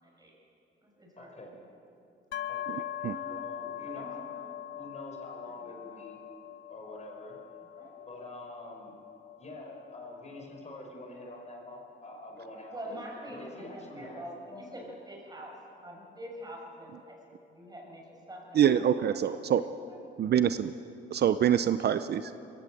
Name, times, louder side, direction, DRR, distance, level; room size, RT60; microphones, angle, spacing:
voice 1, 0.0-0.3 0.8-1.3 3.0-3.5 3.8-4.8 5.5-6.0 7.7-8.1 12.7-15.5 15.8-17.2 17.5-18.0 18.3-19.0 19.3-19.4 19.9-20.0, equal, 20° right, -1 dB, 6.7 m, -45 dB
voice 2, 1.2-1.6 2.5-2.8 3.2-4.2 4.8-6.2 6.7-7.4 8.1-9.0 9.4-13.0 13.3-14.6, left 1 dB, 35° left, 1 dB, 5.3 m, -46 dB
sound 1, 2.3-16.0, left 11 dB, 65° left, 0.9 m, -43 dB
voice 3, 18.6-19.6 20.2-20.7 21.1-22.3, right 9 dB, 55° right, 12 dB, 0.6 m, -25 dB
21.5 x 16.0 x 7.8 m, 2.7 s
cardioid pair, 90°, 20 cm